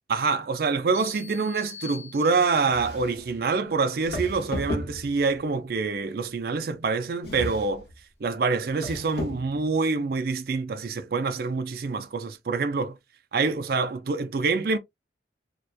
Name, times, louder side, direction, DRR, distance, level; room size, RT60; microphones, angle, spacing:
voice 1, 0.1-7.9 8.2-13.0 13.3-14.8, right 4 dB, 55° right, 0.4 m, -26 dB
sound 1, 0.9-2.8, left 6 dB, 10° right, 0.9 m, -44 dB
sound 2, 2.7-3.4 4.0-5.4 7.2-8.0 8.7-9.6, left 1 dB, 60° left, 0.8 m, -34 dB
2.9 x 2.1 x 2.2 m
head